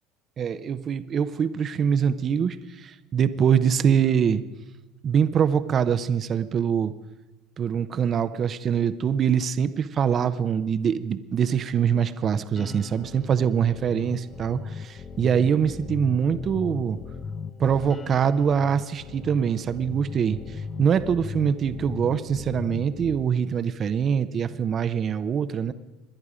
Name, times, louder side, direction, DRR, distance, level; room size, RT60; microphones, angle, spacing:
voice 1, 0.4-4.4 5.0-6.9 7.6-17.0 17.6-20.4 20.8-25.7, right 7 dB, 40° right, 13 dB, 0.8 m, -24 dB
sound 1, 12.6-23.2, left 5 dB, 30° left, 0.9 m, -38 dB
26.0 x 11.0 x 5.0 m, 1.1 s
hypercardioid pair, 75°, 0 cm